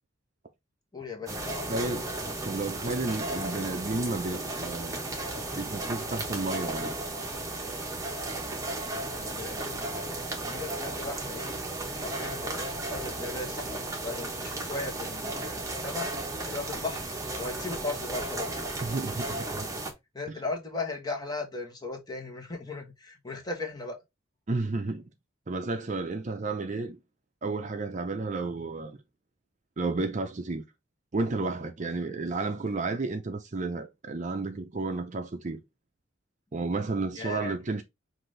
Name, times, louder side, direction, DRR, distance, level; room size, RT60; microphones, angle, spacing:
voice 1, 0.9-1.7 9.2-11.7 11.9-18.6 20.1-24.0 37.1-37.6, left 3 dB, 20° left, 1.1 m, -37 dB
sound 1, 1.3-19.9, right 2 dB, 15° right, 0.9 m, -34 dB
voice 2, 1.7-2.1 2.4-5.0 5.6-6.9 18.8-19.7 24.5-25.1 25.5-27.0 27.4-29.0 29.8-30.6 31.1-35.6 36.5-37.8, right 3 dB, 35° right, 0.5 m, -32 dB
5.8 x 2.6 x 3.2 m
head